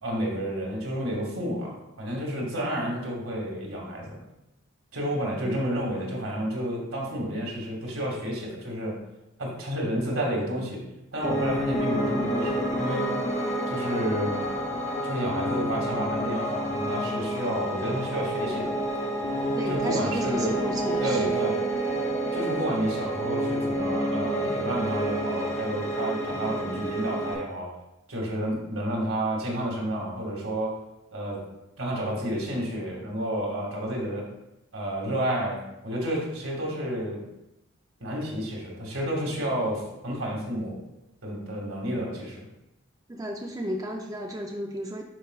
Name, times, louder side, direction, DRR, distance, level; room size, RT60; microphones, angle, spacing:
voice 1, 0.0-4.2 4.9-9.0 9.4-10.8 11.1-13.3 13.7-14.5 15.0-18.8 19.7-20.6 21.0-21.6 22.3-27.7 28.1-30.8 31.1-31.4 31.8-34.3 34.7-37.2 38.0-40.8 41.2-42.5, equal, 85° right, -2 dB, 2.1 m, -30 dB
Piano, 11.2-27.3, right 1 dB, 35° left, 1.2 m, -29 dB
voice 2, 19.5-21.4 43.1-45.0, right 1 dB, 15° right, 1 dB, 0.5 m, -33 dB
10.0 x 5.0 x 2.4 m, 0.89 s
head